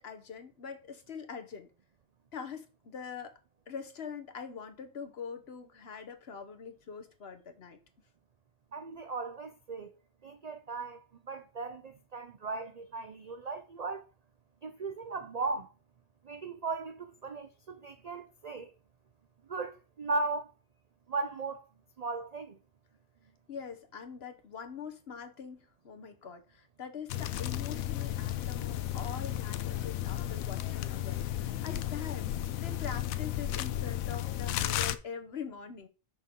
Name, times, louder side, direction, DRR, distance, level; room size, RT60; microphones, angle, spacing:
voice 1, 0.0-1.7 2.3-3.4 3.7-7.8 23.5-25.6 25.8-35.9, left 6 dB, 50° left, 1.2 m, -43 dB
voice 2, 8.7-9.9 10.2-14.1 14.6-15.7 16.2-18.7 19.5-20.5 21.1-21.6 22.0-22.6, right 3 dB, 65° right, 0.4 m, -37 dB
sound 1, 27.1-35.0, left 13 dB, 90° left, 1.0 m, -34 dB
6.7 x 6.0 x 3.7 m
omnidirectional pair, 1.4 m